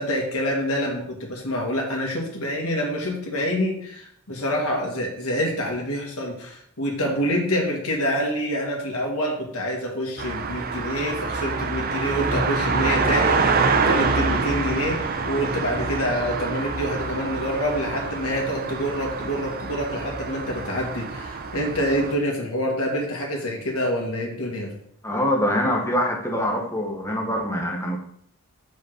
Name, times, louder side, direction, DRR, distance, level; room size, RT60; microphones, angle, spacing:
voice 1, 0.0-24.8, equal, 85° left, 0 dB, 1.8 m, -27 dB
sound 1, 10.2-22.1, right 4 dB, 40° right, 0.6 m, -26 dB
voice 2, 25.0-28.0, equal, 10° left, 1 dB, 1.1 m, -24 dB
5.1 x 5.1 x 6.4 m, 0.67 s
head